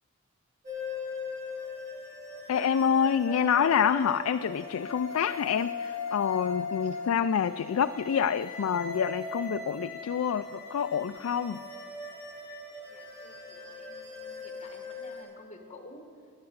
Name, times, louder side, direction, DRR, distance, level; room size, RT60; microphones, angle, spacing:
sound 1, 0.6-15.2, left 3 dB, 35° right, 4.6 m, -39 dB
voice 1, 2.5-11.6, left 7 dB, 80° left, 9 dB, 0.4 m, -27 dB
voice 2, 12.9-16.1, left 2 dB, 30° left, 4 dB, 1.6 m, -51 dB
14.0 x 9.6 x 8.0 m, 2.3 s
head